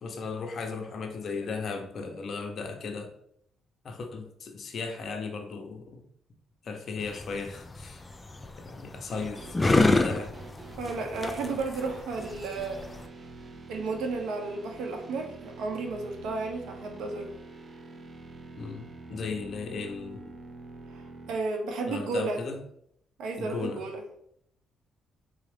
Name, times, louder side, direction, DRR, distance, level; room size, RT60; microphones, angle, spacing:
voice 1, 0.0-3.1 3.8-6.0 6.6-8.0 8.5-9.6 9.9-10.4 18.6-18.8 19.1-20.2 21.8-22.6 23.4-23.8, left 4 dB, 55° left, 3 dB, 0.7 m, -36 dB
sound 1, 7.0-13.1, left 2 dB, 25° left, 0.3 m, -28 dB
sound 2, 9.1-21.4, right 3 dB, 35° right, 0.5 m, -46 dB
voice 2, 10.8-12.8 13.7-17.3 20.9-22.4 23.2-24.0, right 3 dB, 85° right, 3 dB, 0.7 m, -33 dB
3.8 x 2.4 x 3.3 m, 0.70 s
cardioid pair, 90°, 0 cm